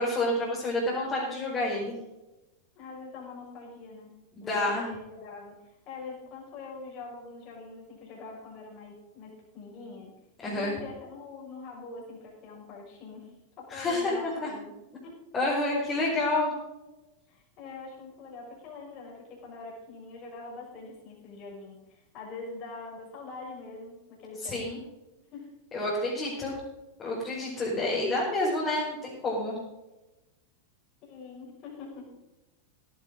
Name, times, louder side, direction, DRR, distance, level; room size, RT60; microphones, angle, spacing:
voice 1, 0.0-1.9 4.4-4.9 10.4-10.8 13.7-14.5 15.3-16.5 24.4-24.8 25.7-26.6 27.0-29.6, left 2 dB, 25° left, -6 dB, 5.2 m, -29 dB
voice 2, 2.7-4.1 4.4-10.1 10.4-13.3 13.6-14.7 15.0-15.2 17.3-24.6 25.3-25.5 31.0-32.1, left 3 dB, 40° left, -2 dB, 6.1 m, -44 dB
17.0 x 11.0 x 3.9 m, 1.0 s
figure-of-eight pair, 90°, 0 cm